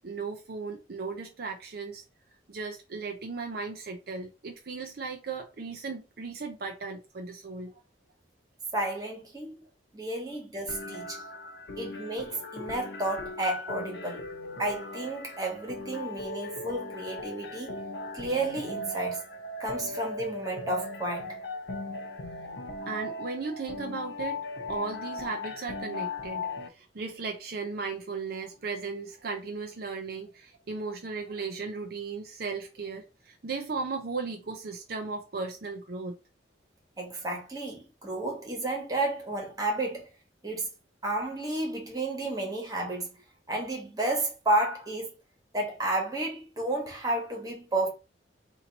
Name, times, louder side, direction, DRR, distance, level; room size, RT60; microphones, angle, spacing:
voice 1, 0.0-2.0 2.5-7.8 22.4-22.5 22.9-24.4 24.7-36.1, right 4 dB, 60° right, 0.6 m, -36 dB
voice 2, 8.7-9.6 9.9-11.2 11.8-14.3 14.6-17.8 18.1-19.2 19.6-21.4 37.0-40.1 40.4-40.7 41.0-43.2 43.5-45.1 45.5-47.9, right 2 dB, 20° right, 1.3 m, -31 dB
sound 1, 10.7-26.7, left 2 dB, 70° left, 0.7 m, -38 dB
2.9 x 2.8 x 4.0 m
head